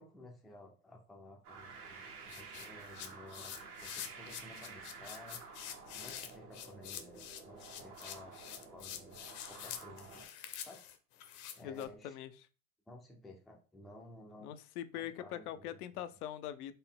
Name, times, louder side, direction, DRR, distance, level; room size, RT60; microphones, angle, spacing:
voice 1, 0.0-5.4 5.9-10.3 10.6-10.8 11.6-12.2 12.9-14.5 14.9-16.0, left 1 dB, ahead, 0.3 m, -55 dB
sound 1, 1.4-10.3, right 4 dB, 90° right, 1.4 m, -51 dB
sound 2, 2.3-11.9, left 10 dB, 45° left, 0.6 m, -47 dB
voice 2, 11.6-12.3 14.4-16.7, left 11 dB, 90° left, 0.6 m, -42 dB
4.0 x 2.1 x 3.5 m
supercardioid pair, 125°, 43 cm